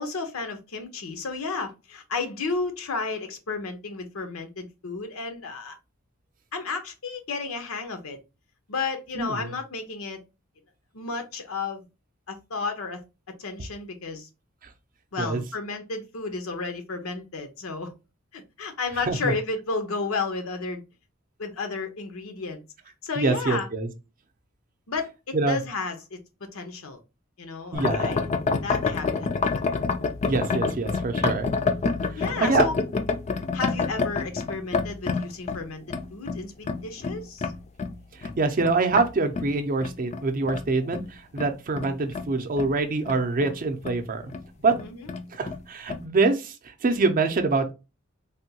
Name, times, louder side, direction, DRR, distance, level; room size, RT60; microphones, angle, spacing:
voice 1, 0.0-5.8 6.5-8.2 8.7-10.2 10.9-11.9 12.3-13.0 13.4-14.3 15.1-17.9 18.3-20.8 21.4-22.6 23.0-23.7 24.9-27.0 27.4-28.2 28.6-29.5 32.2-32.7 33.5-37.5 44.8-45.0, left 4 dB, 80° left, 0.8 m, -32 dB
voice 2, 9.1-9.5 15.2-15.4 19.1-19.3 23.2-23.9 25.3-25.6 27.7-28.2 30.2-31.5 32.1-32.7 38.2-44.3 44.6-44.8 45.3-47.7, right 3 dB, 40° right, 0.5 m, -25 dB
sound 1, 27.7-39.1 39.3-42.7 43.0-43.6 43.8-44.0 44.3-44.4 44.7-45.6 45.9-46.0, left 4 dB, 35° left, 0.3 m, -28 dB
3.5 x 2.2 x 2.7 m
head